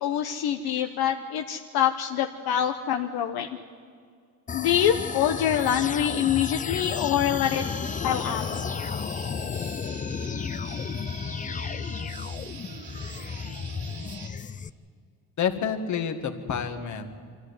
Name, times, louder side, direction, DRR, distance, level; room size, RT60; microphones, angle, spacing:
voice 1, 0.0-3.5 4.5-7.6 8.0-8.4, left 10 dB, 70° left, 5 dB, 1.1 m, -25 dB
sound 1, 4.5-14.7, left 6 dB, 20° left, 0.4 m, -33 dB
Guitar, 7.4-14.3, right 5 dB, 80° right, 3.0 m, -43 dB
voice 2, 15.4-17.1, left 7 dB, 50° left, 7 dB, 1.9 m, -28 dB
24.0 x 14.5 x 9.7 m, 2.2 s
cardioid pair, 120°, 38 cm